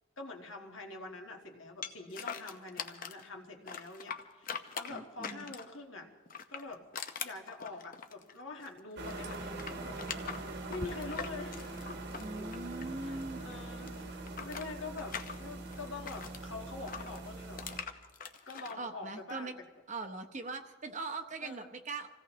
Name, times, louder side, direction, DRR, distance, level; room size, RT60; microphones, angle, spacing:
voice 1, 0.2-6.1 6.5-6.8 7.2-10.4 10.7-12.0 12.4-12.5 12.8-17.6 18.4-19.5 21.4-21.7, left 3 dB, 65° left, 2 dB, 1.6 m, -45 dB
sound 1, 1.8-3.3 3.7-5.8 6.3-8.8 9.0-13.2 13.5-16.4 16.9-18.8, left 6 dB, 40° left, 0.8 m, -42 dB
voice 2, 4.9-5.4 12.1-13.7 18.8-19.5 19.9-22.1, right 3 dB, 35° right, 7 dB, 0.8 m, -41 dB
sound 2, 9.0-17.8, right 2 dB, 50° right, 1.3 m, -43 dB
26.5 x 16.5 x 3.1 m, 1.4 s
head